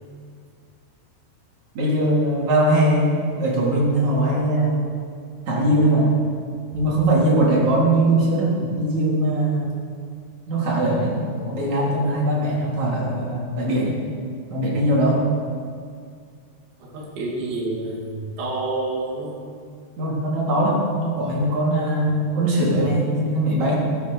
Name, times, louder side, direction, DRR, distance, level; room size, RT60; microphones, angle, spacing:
voice 1, 1.7-4.8 5.5-6.1 6.7-9.7 10.5-14.0 14.5-15.2 20.0-23.8, right 1 dB, 45° right, -5 dB, 4.7 m, -21 dB
voice 2, 16.8-19.4, right 2 dB, 60° right, -4 dB, 4.6 m, -28 dB
19.5 x 9.4 x 7.2 m, 2.1 s
omnidirectional pair, 4.9 m